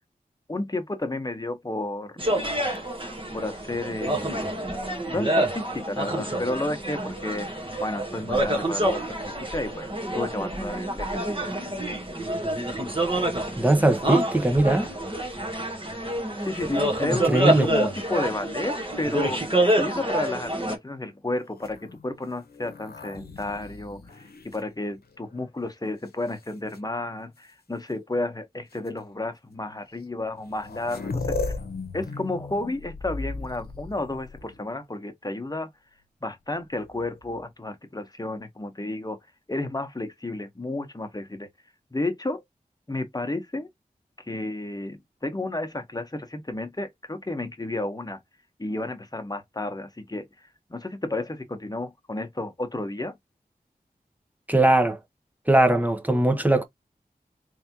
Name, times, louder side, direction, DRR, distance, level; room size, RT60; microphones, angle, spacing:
voice 1, 0.5-2.1 3.3-4.8 5.1-11.5 16.4-19.4 19.8-31.5 31.9-35.7 36.2-39.2 39.5-41.5 41.9-42.4 42.9-43.7 44.2-48.2 48.6-50.3 50.7-53.1, left 2 dB, 25° left, 1.1 m, -32 dB
sound 1, 2.2-20.8, right 1 dB, 35° right, 1.4 m, -27 dB
voice 2, 13.6-14.9 17.1-17.7 54.5-55.0 55.5-56.6, right 1 dB, 10° right, 1.0 m, -20 dB
sound 2, 21.5-25.4 26.1-26.8 27.9-28.0 28.7-28.9 30.0-30.1 30.3-34.8 36.7-37.4, left 3 dB, 80° left, 0.8 m, -37 dB
3.4 x 3.4 x 2.9 m
wide cardioid pair, 60°, 16 cm